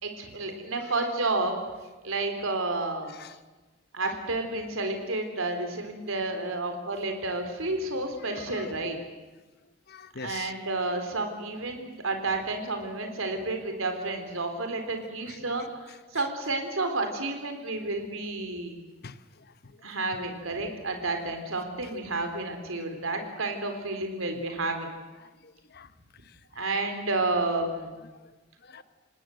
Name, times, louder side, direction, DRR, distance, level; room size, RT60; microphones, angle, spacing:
voice 1, 0.0-1.6 2.0-3.2 3.9-9.0 10.2-18.8 19.8-24.9 26.6-28.0, right 2 dB, 80° right, 5 dB, 3.8 m, -31 dB
voice 2, 0.8-1.1 3.1-3.4 8.3-8.7 9.9-10.5 15.3-15.4 15.9-16.3 19.0-19.2 19.8-19.9 23.9-24.0 24.3-24.4 25.2-25.9 28.0-28.1 28.6-28.8, left 5 dB, 50° left, 13 dB, 1.1 m, -45 dB
28.5 x 19.5 x 7.8 m, 1.2 s
head